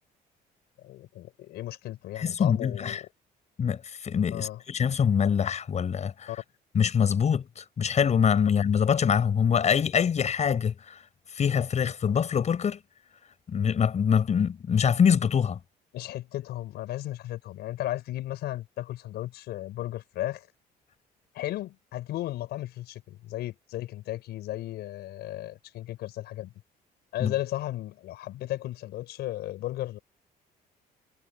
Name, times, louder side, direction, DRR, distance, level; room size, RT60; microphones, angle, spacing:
voice 1, 0.8-3.1 4.3-4.6 6.3-6.4 15.9-20.5 21.3-26.5 27.1-30.0, left 14 dB, 75° left, 5.8 m, -35 dB
voice 2, 2.2-3.0 3.6-6.3 6.7-11.0 11.3-12.8 13.5-15.6 27.2-27.3, left 7 dB, 40° left, 6.3 m, -24 dB
cardioid pair, 110°, 17 cm